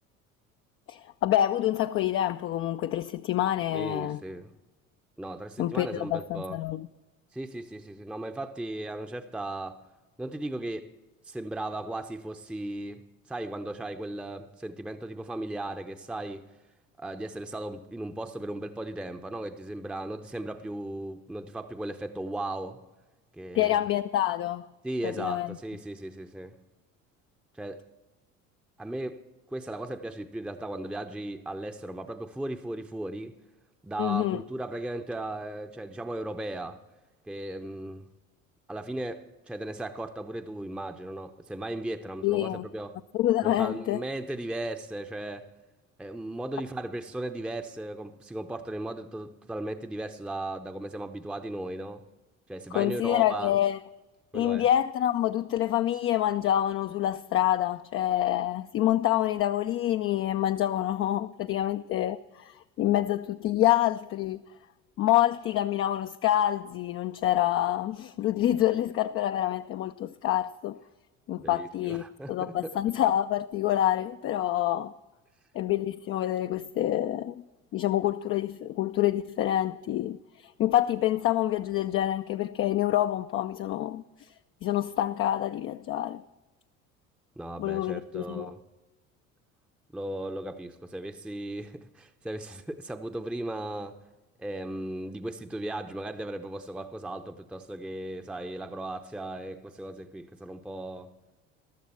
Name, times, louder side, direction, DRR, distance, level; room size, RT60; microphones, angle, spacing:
voice 1, 0.9-4.2 5.6-6.9 23.5-24.6 25.0-25.6 34.0-34.4 42.2-42.6 43.1-44.0 52.7-53.8 54.3-64.4 65.0-70.8 71.3-72.0 72.3-74.9 75.5-77.4 77.7-84.3 84.6-86.2 87.6-88.5, left 12 dB, 35° left, 0.4 m, -27 dB
voice 2, 3.7-4.5 5.2-6.6 7.3-9.8 10.2-10.9 11.3-13.0 13.3-16.5 17.0-22.8 23.3-23.8 24.8-26.6 27.6-27.9 28.8-29.2 29.5-33.4 33.8-36.8 37.3-38.1 38.7-42.9 43.4-45.5 46.0-52.0 52.5-53.5 54.3-54.7 71.4-72.8 87.4-88.6 89.9-94.0 94.4-101.1, right 1 dB, 5° right, 0.6 m, -36 dB
15.0 x 12.0 x 4.3 m
hypercardioid pair, 65°, 40 cm